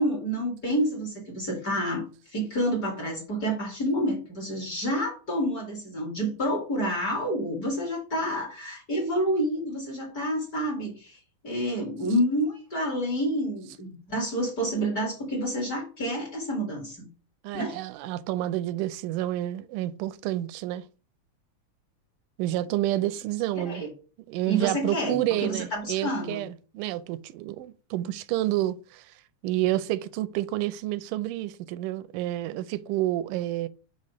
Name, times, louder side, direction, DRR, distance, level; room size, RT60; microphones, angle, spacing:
voice 1, 0.0-2.0 2.3-11.2 11.4-17.1 17.5-17.8 23.5-23.9 24.5-26.4, equal, 35° left, 1.8 m, -28 dB
voice 2, 17.4-20.8 22.4-23.8 24.3-29.1 29.4-33.7, right 14 dB, 90° right, 2.1 m, -29 dB
5.7 x 3.5 x 5.1 m
omnidirectional pair, 3.6 m